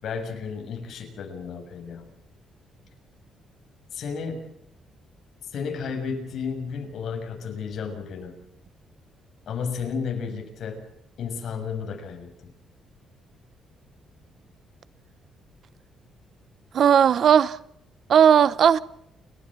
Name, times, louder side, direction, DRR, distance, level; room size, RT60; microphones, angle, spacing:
voice 1, 0.0-2.0 3.9-4.5 5.5-8.3 9.5-10.8 11.2-12.3, left 5 dB, 50° left, 6.9 m, -32 dB
voice 2, 16.7-17.6 18.1-18.8, right 8 dB, 45° right, 0.8 m, -16 dB
30.0 x 14.0 x 7.5 m
cardioid pair, 175°, 0 cm